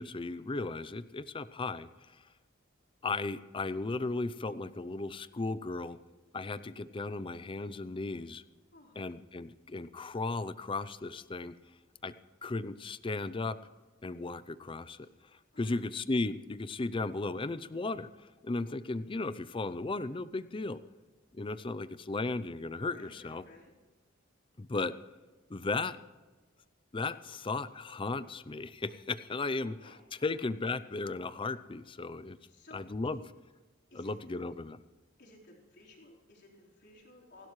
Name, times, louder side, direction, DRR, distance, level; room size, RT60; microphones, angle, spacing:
voice 1, 0.0-1.9 3.0-6.0 6.3-8.4 9.0-11.5 12.0-12.1 12.4-13.6 14.0-15.1 15.6-20.8 21.3-23.4 24.6-24.9 25.5-26.0 26.9-32.4 32.7-33.2 33.9-34.8, left 3 dB, 25° left, 14 dB, 0.5 m, -35 dB
voice 2, 8.7-9.1 15.0-15.2 15.5-15.8 22.9-23.7 29.8-30.0 32.4-33.3 33.9-34.4 35.2-37.5, left 2 dB, 55° left, -3 dB, 4.2 m, -57 dB
29.0 x 12.0 x 3.2 m, 1.3 s
head